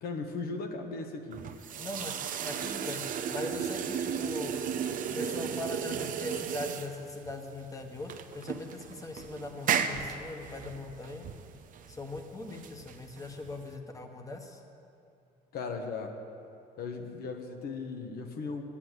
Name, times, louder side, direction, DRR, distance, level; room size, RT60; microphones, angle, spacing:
voice 1, 0.0-1.5 15.5-16.2 16.8-18.6, left 4 dB, 65° left, 4 dB, 1.4 m, -37 dB
sound 1, 1.3-13.7, right 7 dB, 55° right, 0.8 m, -35 dB
voice 2, 1.8-4.6 5.1-11.3 11.9-14.6, left 2 dB, 20° left, 4 dB, 1.4 m, -41 dB
11.0 x 9.9 x 8.1 m, 2.6 s
cardioid pair, 110°, 17 cm